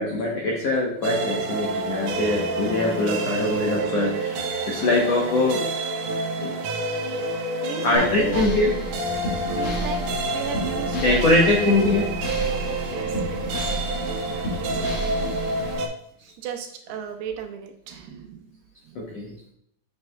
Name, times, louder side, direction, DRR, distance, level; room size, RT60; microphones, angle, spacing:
voice 1, 0.0-5.6 6.4-6.5 7.8-8.7 10.9-12.1 14.7-14.9 18.9-19.3, left 2 dB, 85° left, -2 dB, 1.4 m, -23 dB
sound 1, 1.0-15.9, right 2 dB, 70° right, 2.0 m, -28 dB
voice 2, 7.6-8.5 9.5-11.0 12.9-13.9 14.4-14.9 15.2-15.3 16.2-19.2, right 7 dB, 85° right, 5 dB, 2.8 m, -36 dB
sound 2, 7.9-15.7, right 1 dB, 50° left, 1.9 m, -31 dB
7.9 x 6.7 x 2.3 m, 0.70 s
omnidirectional pair, 4.6 m